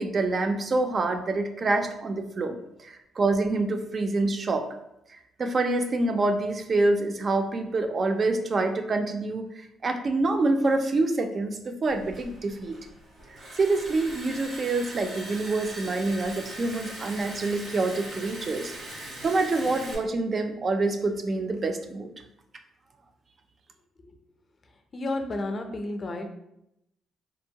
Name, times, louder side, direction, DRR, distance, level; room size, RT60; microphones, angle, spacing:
voice 1, 0.0-4.7 5.4-9.5 9.8-12.7 13.6-22.1, right 2 dB, 40° right, 6 dB, 0.3 m, -26 dB
Liquid, 11.9-20.0, right 1 dB, 65° right, 0.9 m, -41 dB
voice 2, 24.9-26.3, left 2 dB, 40° left, 5 dB, 0.4 m, -31 dB
2.7 x 2.1 x 2.7 m, 0.83 s
cardioid pair, 90°, 0 cm